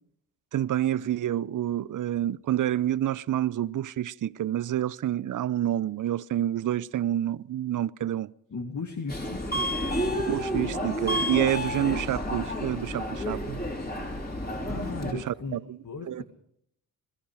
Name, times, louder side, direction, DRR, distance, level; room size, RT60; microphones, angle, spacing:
voice 1, 0.5-8.3 10.3-13.6 15.1-15.8 16.1-16.2, right 12 dB, 40° right, 0.7 m, -28 dB
voice 2, 8.5-9.6 14.6-15.6 15.8-16.2, left 4 dB, 40° left, 2.2 m, -36 dB
Subway metro underground, 9.1-15.1, left 1 dB, 20° left, 4.8 m, -30 dB
21.0 x 13.0 x 5.0 m
hypercardioid pair, 45°, 46 cm